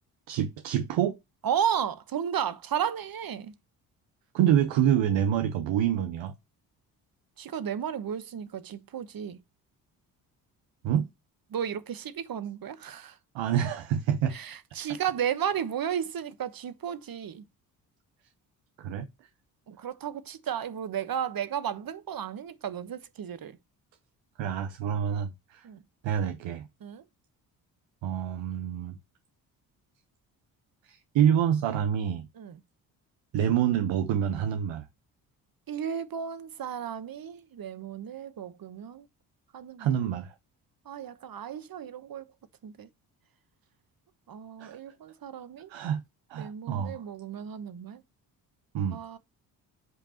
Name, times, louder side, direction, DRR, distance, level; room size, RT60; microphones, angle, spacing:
voice 1, 0.3-1.2 4.3-6.3 10.8-11.1 13.3-14.3 18.8-19.1 24.4-25.7 26.0-26.7 28.0-29.0 30.8-32.3 33.3-34.9 39.8-40.3 44.6-44.8 45.7-46.0 46.3-47.0 48.7-49.0, right 9 dB, 70° right, 1.1 m, -27 dB
voice 2, 1.4-3.5 7.4-9.4 11.5-13.2 14.3-17.4 19.7-23.6 25.6-25.8 26.8-27.0 32.4-32.6 35.7-39.0 39.5-39.9 40.8-42.3 42.6-42.9 44.3-45.7 46.3-48.0 48.9-49.2, right 8 dB, 50° right, 1.2 m, -34 dB
8.0 x 5.3 x 3.0 m
hypercardioid pair, 50°, 46 cm